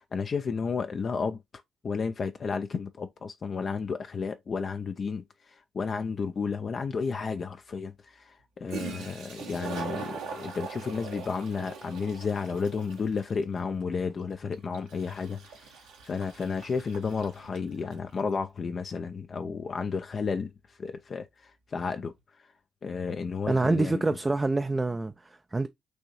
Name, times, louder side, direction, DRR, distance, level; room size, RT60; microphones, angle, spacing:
voice 1, 0.0-1.4 1.8-15.8 16.0-22.1 22.8-24.0, left 5 dB, 45° left, 0.4 m, -32 dB
Toilet flush, 6.7-6.8 8.4-8.5 8.7-18.1, right 5 dB, 75° right, 1.0 m, -42 dB
voice 2, 23.5-25.7, right 2 dB, 25° right, 0.4 m, -26 dB
6.2 x 2.7 x 2.9 m
hypercardioid pair, 45°, 0 cm